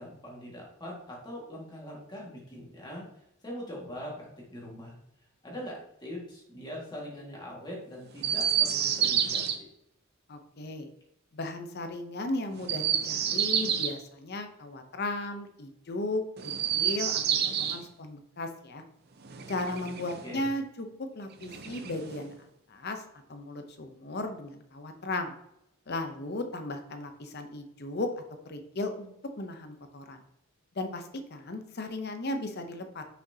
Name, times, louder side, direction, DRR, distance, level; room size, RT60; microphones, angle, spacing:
voice 1, 0.0-3.0 3.4-4.9 5.4-9.7 20.2-20.5, equal, 20° left, -3 dB, 1.8 m, -42 dB
Chirp tweet, 8.2-9.6 12.6-14.0 16.4-17.8 19.2-20.3 21.4-22.3, right 9 dB, 45° right, 0.6 m, -29 dB
voice 2, 10.3-10.9 11.3-17.1 17.6-18.8 19.5-22.3 22.7-23.0 23.3-25.3 25.9-28.1 28.5-30.2 30.8-33.0, left 2 dB, 45° left, 7 dB, 0.7 m, -36 dB
6.0 x 5.9 x 2.8 m, 0.82 s
head